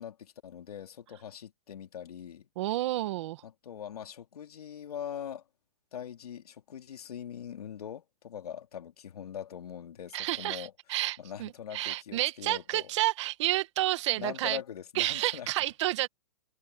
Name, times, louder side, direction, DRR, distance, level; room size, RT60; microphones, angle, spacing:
voice 1, 0.0-2.5 3.4-5.4 5.9-10.7 11.2-12.9 14.2-15.5, left 9 dB, 85° left, 3.1 m, -42 dB
voice 2, 2.6-3.4 10.1-14.6 14.9-16.1, right 16 dB, 50° right, 2.1 m, -30 dB
hypercardioid pair, 150°, 19 cm